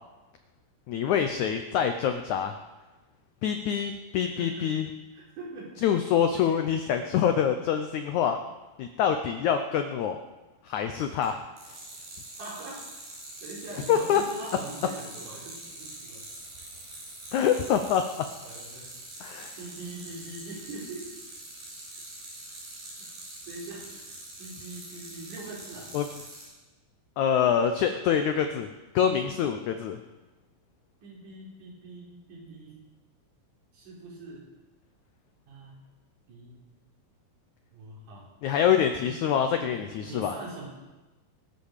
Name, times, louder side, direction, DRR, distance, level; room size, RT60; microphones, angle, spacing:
voice 1, 0.9-2.5 3.4-4.9 5.8-8.4 8.8-10.2 10.6-11.4 11.7-11.8 13.9-14.2 17.3-18.0 19.2-19.6 25.9-26.0 27.2-28.7 28.9-30.0 38.4-40.3, left 8 dB, 80° left, 7 dB, 1.7 m, -25 dB
voice 2, 4.3-4.7 5.1-5.7 6.5-6.6 12.4-12.8 13.4-16.2 18.4-19.0 19.6-21.1 23.0-23.1 23.5-23.9 24.4-25.9 29.0-29.4 31.0-32.8 33.7-34.5 35.5-35.8 36.3-36.7 37.7-38.3 39.0-40.7, right 2 dB, 55° right, -3 dB, 5.5 m, -42 dB
sound 1, 10.8-11.3 11.6-26.5, right 2 dB, 80° right, 7.8 m, -44 dB
23.5 x 8.0 x 6.6 m, 1.1 s
omnidirectional pair, 4.4 m